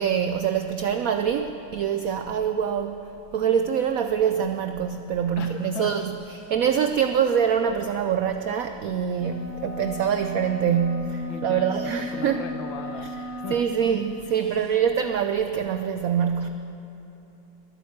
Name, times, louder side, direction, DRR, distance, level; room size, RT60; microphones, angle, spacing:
voice 1, 0.0-3.0 3.3-12.4 13.0-16.5, right 8 dB, 90° right, 7 dB, 0.7 m, -25 dB
voice 2, 5.4-6.5 11.3-13.6 14.5-14.6, left 6 dB, 75° left, 7 dB, 1.7 m, -37 dB
sound 1, 9.2-13.8, left 2 dB, 55° left, 1.9 m, -36 dB
21.0 x 8.7 x 7.2 m, 3.0 s
omnidirectional pair, 2.1 m